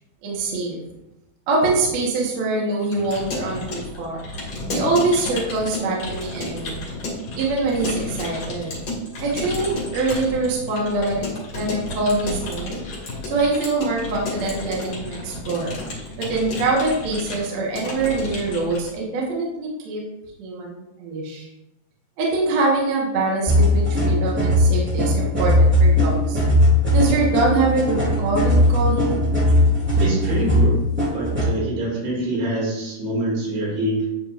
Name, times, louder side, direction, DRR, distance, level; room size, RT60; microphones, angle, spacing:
voice 1, 0.2-0.8 1.5-4.2 4.7-6.9 7.4-8.7 9.2-11.2 11.5-12.8 13.2-15.7 16.2-20.0 20.4-21.5 22.2-26.4 26.9-29.3, right 3 dB, 60° right, -3 dB, 2.0 m, -24 dB
Keyboard (musical) / Computer keyboard, 2.8-18.9, left 2 dB, 45° left, 2.6 m, -32 dB
sound 1, 23.5-31.5, left 1 dB, 5° right, 0.8 m, -18 dB
voice 2, 30.0-30.8 31.1-34.1, right 1 dB, 75° right, -6 dB, 4.4 m, -25 dB
9.8 x 4.9 x 2.5 m, 0.91 s
omnidirectional pair, 4.5 m